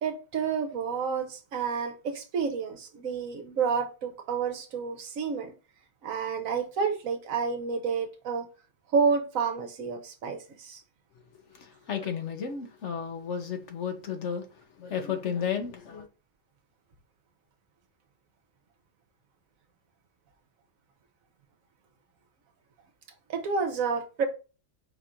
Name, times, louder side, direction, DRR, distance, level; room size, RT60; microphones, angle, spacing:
voice 1, 0.0-5.5 6.0-8.5 8.9-10.8 23.3-24.3, right 5 dB, 70° right, 1.2 m, -29 dB
voice 2, 11.5-16.1, left 7 dB, 60° left, 1.0 m, -33 dB
5.1 x 2.5 x 4.2 m
omnidirectional pair, 1.5 m